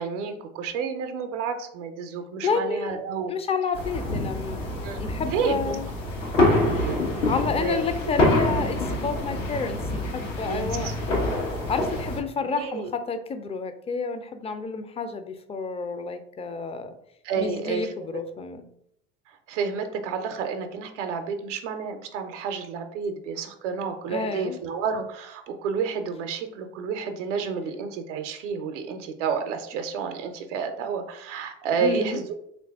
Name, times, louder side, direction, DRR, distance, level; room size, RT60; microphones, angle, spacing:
voice 1, 0.0-3.3 4.8-5.8 6.4-7.0 7.6-7.9 10.4-10.9 12.5-12.9 17.2-18.2 19.5-32.4, right 5 dB, 80° right, 6 dB, 0.5 m, -30 dB
voice 2, 2.4-3.0 3.3-5.9 7.2-11.1 11.7-16.9 17.4-18.6 24.1-24.6 31.8-32.2, left 5 dB, 20° left, 9 dB, 0.4 m, -30 dB
sound 1, 3.7-12.2, left 1 dB, 85° left, 1.0 m, -26 dB
3.2 x 2.5 x 3.4 m, 0.73 s
hypercardioid pair, 70°, 36 cm